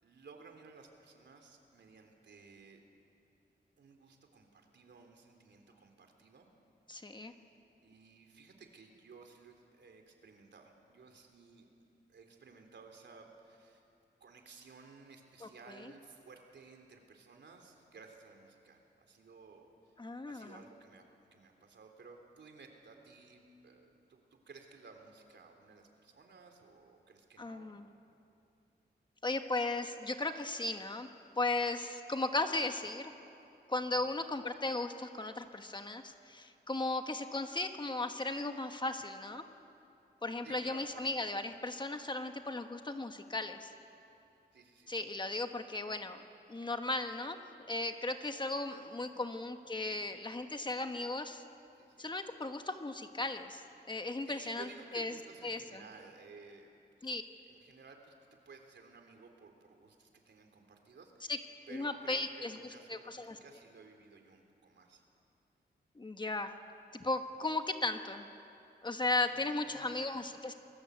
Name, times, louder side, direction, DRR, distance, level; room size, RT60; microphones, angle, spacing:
voice 1, 0.0-2.8 3.8-6.5 7.8-11.6 12.1-13.8 14.2-19.9 20.3-21.0 21.3-27.8 33.9-34.1 40.4-41.1 44.5-45.1 49.0-49.3 49.9-50.0 51.8-52.1 54.2-57.1 57.5-61.3 61.7-65.0 69.3-70.0, right 4 dB, 80° right, 4 dB, 3.4 m, -56 dB
voice 2, 6.9-7.3 15.4-15.9 20.0-20.6 27.4-27.9 29.2-31.1 31.4-33.1 33.7-39.4 40.2-43.7 44.9-46.2 46.5-47.4 47.7-51.4 52.0-53.6 53.9-54.7 54.9-55.2 55.4-55.8 57.0-57.2 61.3-61.4 61.7-63.4 65.9-66.6 66.9-68.2 68.8-70.5, left 2 dB, 25° left, 6 dB, 1.3 m, -36 dB
29.5 x 21.0 x 8.2 m, 2.6 s
wide cardioid pair, 140°, 18 cm